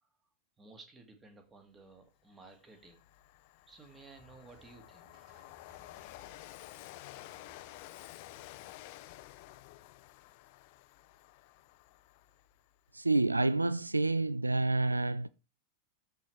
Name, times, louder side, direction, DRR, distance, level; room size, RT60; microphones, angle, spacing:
voice 1, 0.6-3.0 3.7-5.2, right 3 dB, 15° right, 1.9 m, -55 dB
Train, 2.0-2.1 2.5-12.9, left 17 dB, 50° left, 0.5 m, -52 dB
sound 1, 4.1-9.2, right 2 dB, 35° right, 5.4 m, -65 dB
voice 2, 12.9-15.3, right 2 dB, 80° right, 0.3 m, -28 dB
13.0 x 4.5 x 3.2 m
figure-of-eight pair, 90°, 0 cm